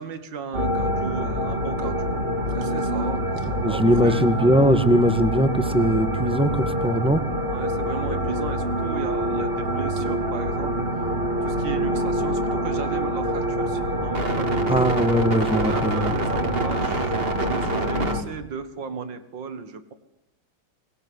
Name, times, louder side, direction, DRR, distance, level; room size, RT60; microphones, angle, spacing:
voice 1, 0.0-2.2 2.5-4.6 7.4-11.1 11.4-15.0 15.7-19.9, right 5 dB, 80° right, 11 dB, 2.5 m, -35 dB
sound 1, 0.5-18.2, right 1 dB, 30° right, 2.6 m, -25 dB
voice 2, 3.4-7.2 14.7-16.1, equal, 5° right, 9 dB, 1.4 m, -20 dB
23.5 x 20.5 x 9.7 m, 0.78 s
omnidirectional pair, 2.0 m